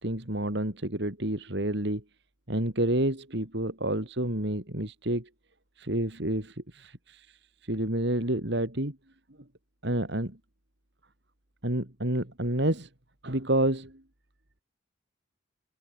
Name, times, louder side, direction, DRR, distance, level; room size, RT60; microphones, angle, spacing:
voice 1, 0.0-2.0 2.5-5.3 5.8-9.0 9.8-10.4 11.6-12.9 13.2-14.0, right 1 dB, 60° right, 3.2 m, -29 dB
head